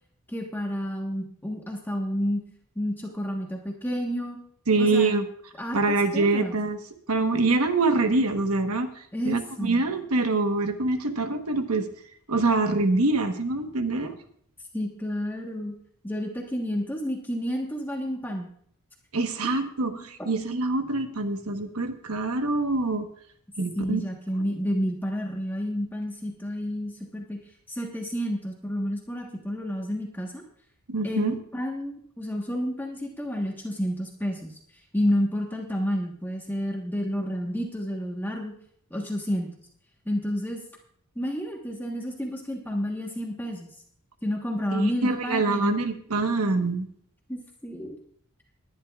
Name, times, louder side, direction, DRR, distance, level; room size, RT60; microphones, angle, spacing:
voice 1, 0.3-2.4 2.7-4.4 4.8-5.1 5.6-6.6 9.1-9.8 14.7-15.7 16.0-18.5 19.4-20.3 23.8-27.4 27.7-30.4 31.0-38.5 38.9-39.5 40.0-40.6 41.1-43.7 44.2-45.8 47.3-48.0, equal, 10° left, 0 dB, 1.3 m, -30 dB
voice 2, 4.7-5.3 5.7-6.8 7.1-11.9 12.3-14.2 19.1-23.1 23.6-24.0 30.9-31.3 44.7-46.9, right 3 dB, 75° right, 7 dB, 1.3 m, -25 dB
20.0 x 11.0 x 2.4 m, 0.64 s
head